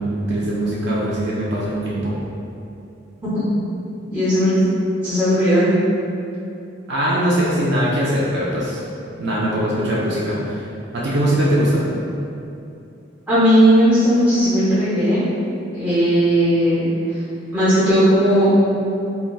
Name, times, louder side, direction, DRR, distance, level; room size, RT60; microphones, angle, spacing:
voice 1, 0.0-2.1 6.9-8.8 9.2-10.4 10.9-11.8, right 1 dB, 60° right, -6 dB, 0.4 m, -21 dB
voice 2, 4.1-4.6 5.0-5.7 13.3-15.2 15.7-16.9 17.5-18.5, equal, 10° right, -13 dB, 0.6 m, -16 dB
3.7 x 2.2 x 2.3 m, 2.7 s
head